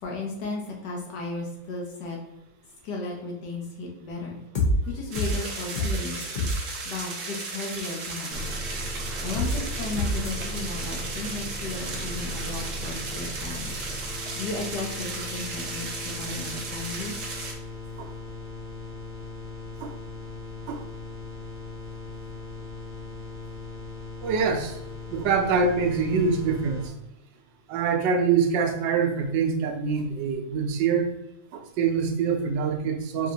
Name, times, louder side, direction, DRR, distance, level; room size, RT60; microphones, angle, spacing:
voice 1, 0.0-2.2 2.8-4.4 4.9-6.5 6.8-8.5 9.2-13.8 14.4-15.9 16.2-17.3, left 3 dB, 75° left, -1 dB, 1.3 m, -35 dB
sound 1, 4.5-4.7 5.1-5.3 5.7-5.9 6.2-6.5 9.3-9.5 9.9-10.3, left 1 dB, 90° left, 0.4 m, -25 dB
sound 2, 5.1-17.5, right 3 dB, 55° right, 1.0 m, -35 dB
sound 3, 8.3-26.9, left 1 dB, 5° left, 0.7 m, -38 dB
voice 2, 24.2-24.8 25.1-26.9 27.7-31.1 31.5-33.3, right 5 dB, 85° right, 3 dB, 1.3 m, -25 dB
5.1 x 2.7 x 2.7 m, 0.95 s
omnidirectional pair, 1.9 m